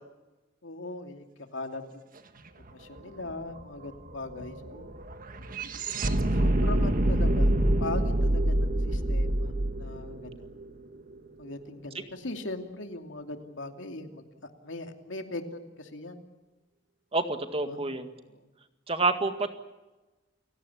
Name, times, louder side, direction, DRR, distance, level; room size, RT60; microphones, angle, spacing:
voice 1, 0.6-1.2 1.5-2.0 2.7-4.9 6.0-10.5 11.4-16.2 17.6-17.8 18.3-18.5, left 2 dB, 85° left, 5 dB, 2.7 m, -40 dB
sound 1, 2.6-2.7 3.0-11.2, right 1 dB, 50° right, 1.5 m, -27 dB
voice 2, 17.1-18.1 18.9-19.5, right 3 dB, 30° right, 7 dB, 1.9 m, -28 dB
30.0 x 17.0 x 8.6 m, 1.1 s
head